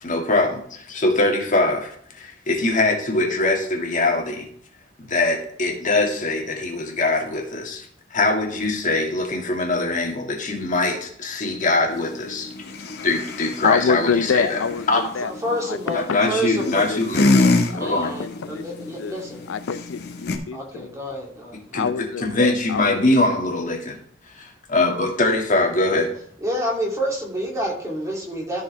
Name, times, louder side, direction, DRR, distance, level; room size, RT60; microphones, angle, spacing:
voice 1, 0.0-4.5 5.0-12.5 13.0-14.6 14.9-15.0 15.9-17.4 17.8-18.2 21.7-24.0 24.4-26.1, left 2 dB, 45° left, 1 dB, 2.0 m, -22 dB
sound 1, 11.9-20.4, left 2 dB, 60° left, 1.4 m, -26 dB
voice 2, 13.6-16.2 16.6-18.6 19.0-19.2 19.5-20.9 21.7-23.4, left 6 dB, 85° left, 13 dB, 0.4 m, -27 dB
voice 3, 14.9-16.8 17.7-19.4 20.5-21.6 26.4-28.6, equal, 15° right, -2 dB, 2.6 m, -28 dB
13.5 x 6.4 x 3.3 m, 0.64 s
head